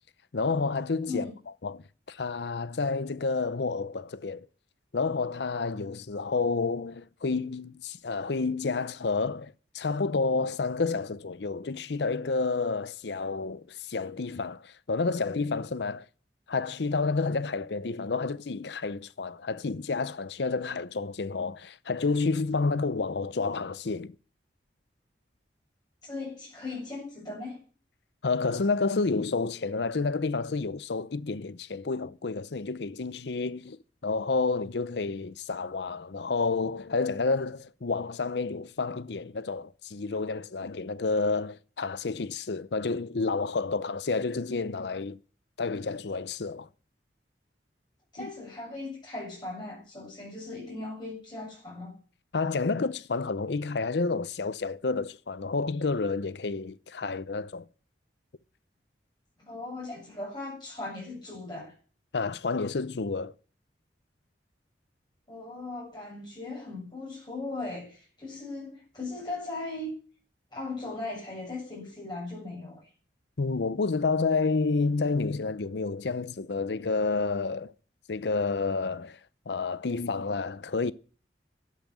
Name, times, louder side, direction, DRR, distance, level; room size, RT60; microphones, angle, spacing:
voice 1, 0.3-1.3 1.6-4.5 4.9-16.1 16.5-24.1 28.2-33.8 34.0-45.2 45.6-46.7 48.2-48.3 52.3-57.6 62.1-63.3 73.4-77.7 78.1-79.2 79.5-80.9, left 4 dB, 70° left, 0.6 m, -30 dB
voice 2, 26.0-27.6 48.1-52.0 59.4-61.7 65.3-69.9 70.5-72.9, left 2 dB, 25° left, 7.7 m, -38 dB
12.5 x 8.1 x 8.3 m
head